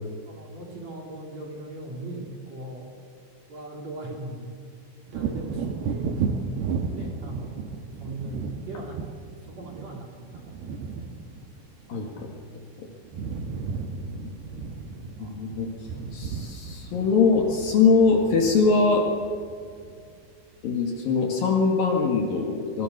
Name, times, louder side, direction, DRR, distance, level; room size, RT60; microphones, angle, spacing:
voice 1, 0.3-2.9 3.5-4.6 5.1-6.5 6.9-7.7 8.0-11.1 13.5-13.8 15.2-15.4, right 1 dB, 40° right, 0 dB, 3.6 m, -39 dB
Wind / Thunder, 5.1-12.7 13.0-20.2 20.6-20.8, right 5 dB, 65° right, 3.0 m, -34 dB
voice 2, 11.9-12.3 12.8-12.9 14.2-14.8 15.2-15.7 16.1-19.1 20.6-22.8, left 4 dB, 55° left, 1 dB, 3.3 m, -22 dB
27.5 x 21.5 x 6.7 m, 2.2 s
omnidirectional pair, 5.5 m